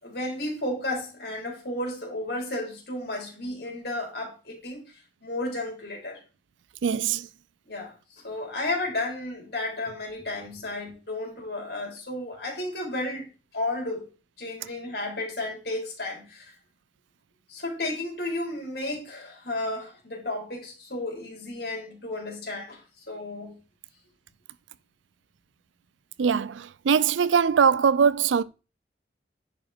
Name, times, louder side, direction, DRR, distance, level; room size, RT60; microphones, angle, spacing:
voice 1, 0.0-4.8 5.2-6.2 7.7-7.9 8.2-14.1 14.4-16.5 17.5-22.8 23.1-23.6, left 2 dB, 55° left, 3.7 m, -33 dB
voice 2, 6.8-7.3 26.2-28.4, right 6 dB, 90° right, 0.4 m, -22 dB
10.0 x 5.3 x 4.3 m
head